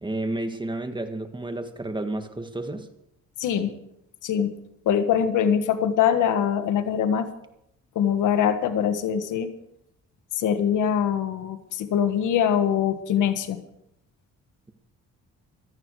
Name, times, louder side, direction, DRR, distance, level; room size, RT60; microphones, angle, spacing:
voice 1, 0.0-2.9, right 2 dB, 15° right, 7 dB, 1.8 m, -31 dB
voice 2, 3.4-3.7 4.2-4.5 4.8-7.3 7.9-9.5 10.4-13.6, left 8 dB, 80° left, 9 dB, 1.5 m, -23 dB
17.0 x 14.0 x 4.8 m, 0.80 s
cardioid pair, 90°, 30 cm